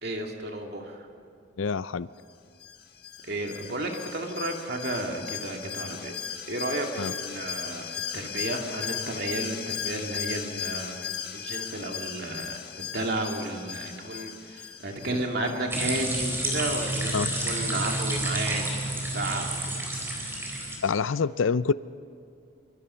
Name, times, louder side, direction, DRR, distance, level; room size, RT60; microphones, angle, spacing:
voice 1, 0.0-1.1 3.2-6.1 6.5-18.7 19.0-19.8, right 2 dB, 55° right, 2 dB, 2.5 m, -33 dB
voice 2, 1.6-2.1 7.0-7.1 17.1-17.3 20.8-21.7, left 5 dB, 80° left, 17 dB, 0.5 m, -26 dB
Alarm, 2.6-16.1 16.4-16.5, left 8 dB, 50° left, 1.5 m, -37 dB
sound 1, 15.7-20.8, right 1 dB, 10° right, 4.0 m, -30 dB
25.0 x 24.0 x 5.7 m, 2.4 s
head